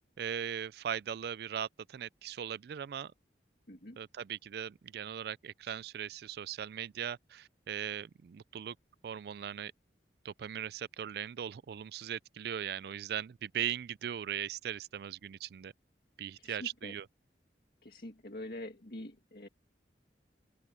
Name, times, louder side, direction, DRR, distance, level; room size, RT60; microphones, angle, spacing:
voice 1, 0.0-3.1 4.0-8.7 9.0-9.7 10.2-15.7 16.2-17.1, right 9 dB, 60° right, 0.3 m, -39 dB
voice 2, 3.7-4.0 16.4-17.0 17.8-19.5, left 1 dB, 55° left, 1.9 m, -45 dB
open air
head